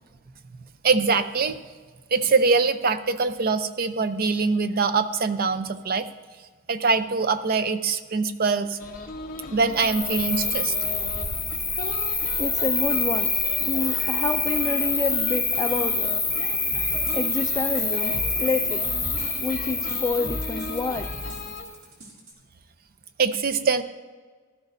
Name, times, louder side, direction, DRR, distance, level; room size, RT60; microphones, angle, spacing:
voice 1, 0.5-1.6 2.1-6.1 6.7-8.8 9.5-10.7 23.2-23.8, right 4 dB, 45° right, 11 dB, 0.5 m, -23 dB
sound 1, 8.8-21.6, left 3 dB, 40° left, 1.0 m, -38 dB
Cricket, 9.7-21.7, left 3 dB, ahead, 2.7 m, -26 dB
voice 2, 12.4-13.3 13.6-16.1 17.1-18.8 19.4-21.1, left 3 dB, 15° left, 6 dB, 0.3 m, -28 dB
sound 2, 16.7-22.3, left 1 dB, 70° right, 2.5 m, -38 dB
15.5 x 12.5 x 2.6 m, 1.4 s
head